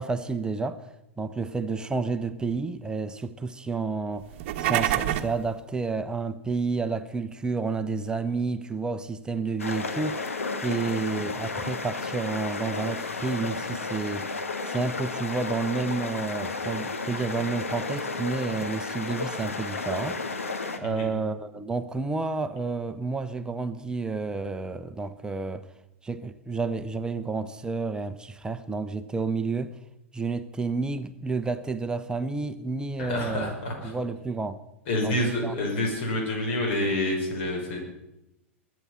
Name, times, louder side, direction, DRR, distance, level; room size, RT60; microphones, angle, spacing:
voice 1, 0.0-4.3 4.6-14.4 14.6-20.2 20.8-25.7 26.0-29.7 30.1-33.5 33.8-34.6 35.0-35.5, right 4 dB, 10° right, 0.8 m, -30 dB
sound 1, 4.3-5.4, right 12 dB, 50° right, 1.1 m, -26 dB
sound 2, 9.6-20.8, left 3 dB, 80° left, 1.6 m, -32 dB
voice 2, 33.0-33.9 34.9-37.8, left 1 dB, 55° left, 6.1 m, -28 dB
22.0 x 9.5 x 5.9 m
figure-of-eight pair, 100°, 7 cm